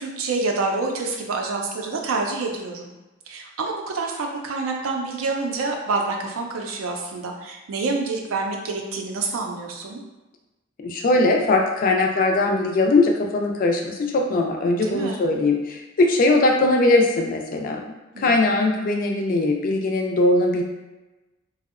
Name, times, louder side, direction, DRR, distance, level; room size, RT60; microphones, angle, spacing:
voice 1, 0.0-2.9 3.3-10.0 14.8-15.2 18.1-18.4, right 3 dB, 80° right, 2 dB, 0.4 m, -27 dB
voice 2, 10.8-17.8 18.2-20.6, left 2 dB, 45° left, 2 dB, 0.3 m, -20 dB
2.6 x 2.0 x 2.4 m, 1.1 s
head